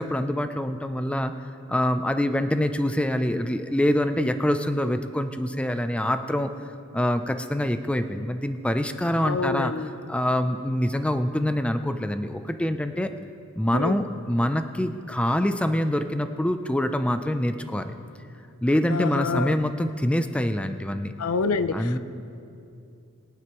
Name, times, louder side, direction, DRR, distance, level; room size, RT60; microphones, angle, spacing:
voice 1, 0.0-1.3 1.7-6.5 6.9-9.7 10.1-13.1 13.5-17.9 18.6-21.1 21.7-22.0, left 1 dB, 5° left, 8 dB, 0.4 m, -25 dB
voice 2, 9.2-9.9 13.7-14.0 18.9-19.5 21.2-22.0, left 4 dB, 70° left, 12 dB, 0.5 m, -27 dB
22.0 x 9.2 x 3.0 m, 2.5 s
head